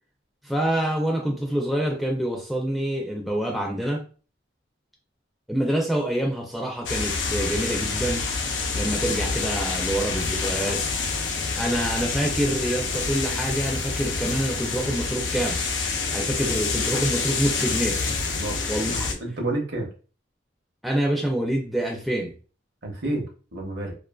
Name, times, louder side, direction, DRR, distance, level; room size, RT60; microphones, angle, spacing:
voice 1, 0.4-4.0 5.5-8.2 8.7-10.8 11.6-15.6 16.1-18.0 18.7-19.2 20.8-22.3, right 1 dB, ahead, -1 dB, 0.4 m, -26 dB
sound 1, 6.9-19.1, left 4 dB, 75° left, 0.5 m, -27 dB
voice 2, 18.9-19.9 22.8-23.9, right 2 dB, 60° right, 1 dB, 0.7 m, -30 dB
2.5 x 2.4 x 2.2 m, 0.37 s
head